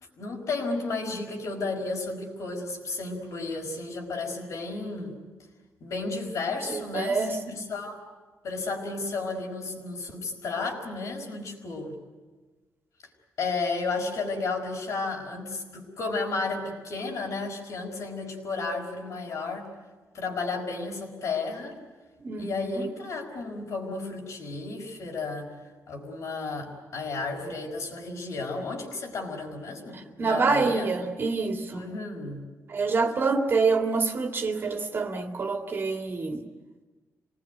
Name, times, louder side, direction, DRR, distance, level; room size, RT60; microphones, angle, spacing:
voice 1, 0.2-5.2 5.8-8.0 8.4-12.0 13.4-19.7 20.1-21.8 22.4-25.5 25.9-30.9 31.7-32.4, left 3 dB, 70° left, 2 dB, 5.0 m, -33 dB
voice 2, 6.7-7.6 22.2-22.5 30.2-31.8 32.7-36.4, right 4 dB, 40° right, 4 dB, 2.2 m, -26 dB
26.5 x 19.5 x 9.4 m, 1.3 s
wide cardioid pair, 130°, 5 cm